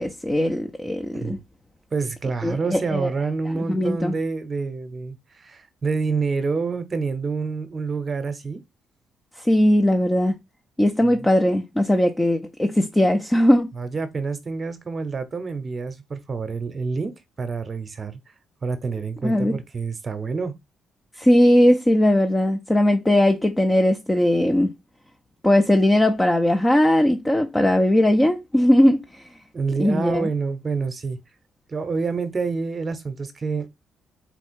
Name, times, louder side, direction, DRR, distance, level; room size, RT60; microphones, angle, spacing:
voice 1, 0.0-1.4 2.4-3.1 3.5-4.1 9.4-10.4 10.8-13.7 19.2-19.6 21.2-24.7 25.4-29.2 29.8-30.3, left 1 dB, 15° left, 0.6 m, -19 dB
voice 2, 1.9-8.6 11.0-11.2 13.7-18.2 18.6-20.6 29.5-31.2 31.7-33.7, right 4 dB, 35° right, 0.8 m, -27 dB
4.2 x 2.3 x 4.4 m
cardioid pair, 90°, 0 cm